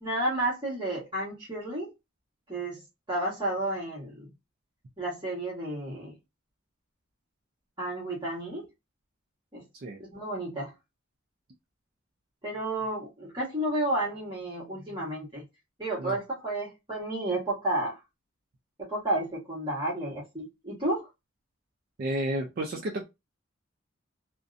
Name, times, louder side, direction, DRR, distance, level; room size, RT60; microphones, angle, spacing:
voice 1, 0.0-1.9 2.5-2.8 3.1-4.3 5.0-6.1 7.8-8.7 9.5-9.6 10.1-10.7 12.4-15.4 15.8-18.0 18.8-21.1, right 1 dB, 25° right, 1.1 m, -31 dB
voice 2, 22.0-23.0, right 1 dB, 50° right, 0.4 m, -31 dB
2.6 x 2.1 x 2.4 m
head